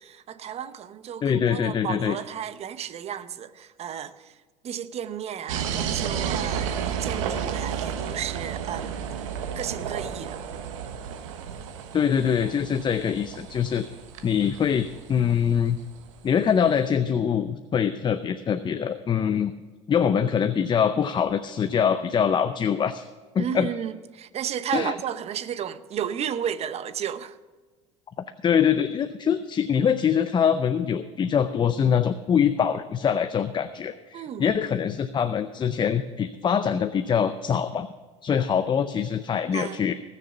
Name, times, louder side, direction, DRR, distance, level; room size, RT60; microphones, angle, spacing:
voice 1, 0.0-4.4 4.6-9.0 9.6-10.4 23.4-27.4 34.1-34.5 39.5-39.8, right 9 dB, 40° right, 0.8 m, -33 dB
voice 2, 1.2-2.2 11.9-13.8 14.2-15.8 16.2-19.5 19.9-23.0 23.3-23.7 24.7-24.9 28.4-37.9 38.2-39.9, left 7 dB, 30° left, 0.6 m, -24 dB
sound 1, 5.5-16.2, right 8 dB, 90° right, 1.2 m, -32 dB
18.5 x 6.7 x 5.6 m
supercardioid pair, 90°, 16 cm